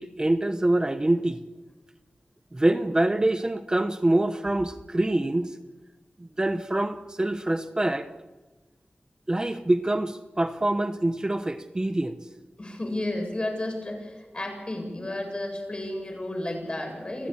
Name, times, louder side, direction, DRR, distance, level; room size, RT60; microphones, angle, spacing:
voice 1, 0.0-1.4 2.5-5.6 6.2-8.1 9.3-12.2, right 1 dB, 25° right, 9 dB, 0.9 m, -25 dB
voice 2, 12.6-17.3, left 1 dB, 35° left, 2 dB, 7.6 m, -32 dB
29.0 x 11.0 x 8.7 m, 1.2 s
wide cardioid pair, 70°, 3 cm